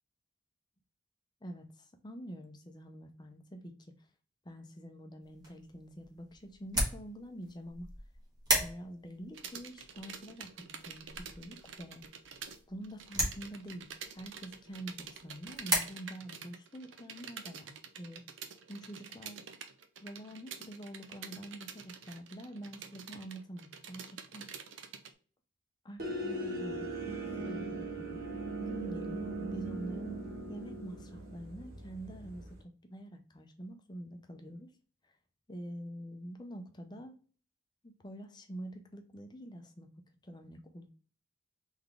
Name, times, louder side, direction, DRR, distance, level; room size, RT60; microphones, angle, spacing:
voice 1, 1.4-3.9 4.4-7.9 8.6-12.0 12.7-18.2 18.7-19.4 20.0-24.5 25.8-30.2 30.5-34.7 35.5-37.2 37.8-39.9 40.2-40.9, right 1 dB, 20° left, 5 dB, 0.6 m, -46 dB
sound 1, 5.2-15.8, right 1 dB, 20° right, 1.4 m, -37 dB
sound 2, 9.3-12.6 12.8-25.1, right 7 dB, 75° right, 0.6 m, -48 dB
sound 3, 26.0-32.6, right 2 dB, 50° right, 1.4 m, -39 dB
3.9 x 3.5 x 3.4 m, 0.41 s
head